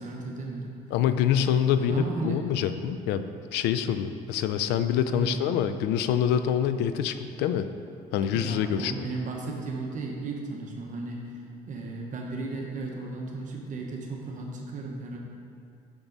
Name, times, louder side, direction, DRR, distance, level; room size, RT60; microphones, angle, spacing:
voice 1, 0.0-0.8 1.8-2.4 5.1-5.4 8.3-11.3 11.7-15.2, right 3 dB, 50° right, -1 dB, 1.1 m, -35 dB
voice 2, 0.9-3.2 3.5-7.7 8.1-9.1, left 8 dB, 90° left, 11 dB, 0.4 m, -26 dB
7.3 x 6.0 x 4.0 m, 2.4 s
cardioid pair, 110°, 17 cm